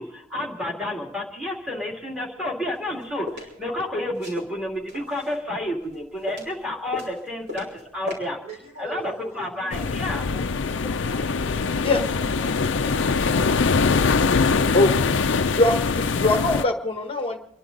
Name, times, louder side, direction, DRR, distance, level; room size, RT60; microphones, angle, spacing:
voice 1, 0.0-8.4 8.8-10.2, left 1 dB, 5° right, -2 dB, 2.3 m, -30 dB
sound 1, 2.7-3.5 4.1-5.4 5.8-6.6 6.9-7.8 8.1-8.2, left 2 dB, 65° right, 5.8 m, -36 dB
voice 2, 8.4-9.8 10.3-13.7, right 1 dB, 35° right, -4 dB, 4.0 m, -43 dB
sound 2, 9.7-16.6, left 4 dB, 60° left, 0.5 m, -22 dB
voice 3, 15.5-17.4, left 2 dB, 25° left, 5 dB, 1.1 m, -22 dB
29.0 x 11.0 x 3.9 m, 0.83 s
head